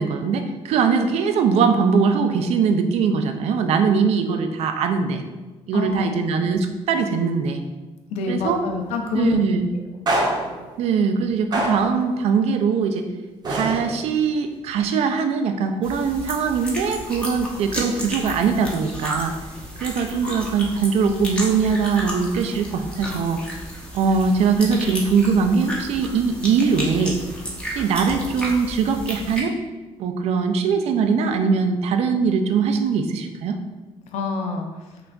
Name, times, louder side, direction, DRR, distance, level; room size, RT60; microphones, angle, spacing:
voice 1, 0.0-5.2 5.7-7.6 8.3-8.6 9.1-9.7 10.8-13.1 13.5-19.3 19.8-23.4 23.9-27.2 27.8-29.5 30.0-33.6, right 5 dB, 70° right, 7 dB, 0.4 m, -21 dB
voice 2, 5.7-6.1 8.1-9.4 34.1-34.7, left 4 dB, 85° left, 3 dB, 0.6 m, -26 dB
sound 1, 8.8-9.0 10.1-10.7 11.5-12.1 13.4-14.2, right 1 dB, 40° right, 0.8 m, -25 dB
sound 2, 15.8-29.4, equal, 10° left, 0.9 m, -33 dB
5.6 x 2.5 x 2.3 m, 1.2 s
cardioid pair, 110°, 11 cm